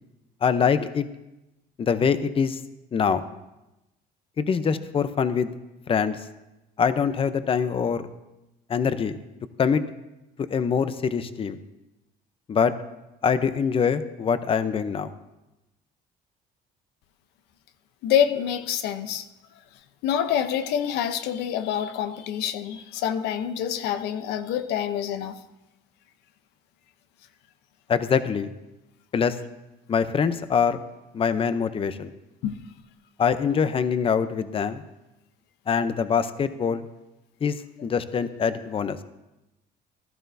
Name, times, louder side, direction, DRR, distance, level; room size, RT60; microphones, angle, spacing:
voice 1, 0.4-1.1 1.8-2.6 2.9-3.3 4.4-5.5 5.9-6.2 6.8-8.0 8.7-9.2 9.6-9.8 10.5-11.6 12.5-12.7 13.2-15.1 27.9-28.5 29.1-29.4 29.9-30.8 31.1-32.1 33.2-34.8 35.7-36.8 37.4-39.0, left 6 dB, 35° left, 0.6 m, -24 dB
voice 2, 18.0-19.3 20.0-25.4 32.4-32.6, left 9 dB, 90° left, 0.8 m, -26 dB
15.0 x 12.5 x 2.7 m
cardioid pair, 110°, 17 cm